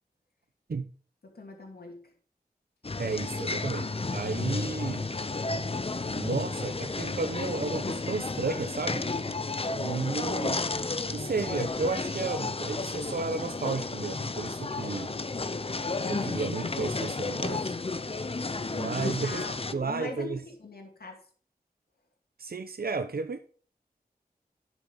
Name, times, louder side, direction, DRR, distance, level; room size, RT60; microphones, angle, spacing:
voice 1, 1.2-2.1 19.1-20.3 20.6-21.3, left 2 dB, 75° left, 2.4 m, -41 dB
sound 1, 2.8-19.7, left 3 dB, 35° left, 0.7 m, -32 dB
voice 2, 3.0-5.1 6.1-9.3 9.8-10.7 11.1-15.1 16.1-17.8 18.7-19.4 19.7-20.4 22.4-23.4, right 4 dB, 70° right, 0.9 m, -33 dB
11.5 x 6.2 x 5.1 m
wide cardioid pair, 55°, 16 cm